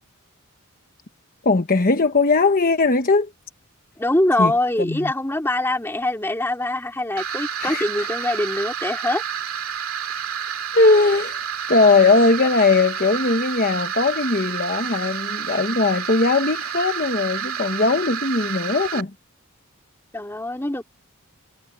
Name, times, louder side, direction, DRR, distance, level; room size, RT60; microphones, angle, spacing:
voice 1, 1.4-3.3 4.4-4.5 4.8-5.1 7.6-7.8 10.7-11.4 11.7-19.1, left 3 dB, 40° left, 1.1 m, -19 dB
voice 2, 4.0-9.2 20.1-20.8, left 1 dB, 10° left, 2.5 m, -23 dB
sound 1, 7.2-19.0, right 8 dB, 70° right, 2.6 m, -29 dB
head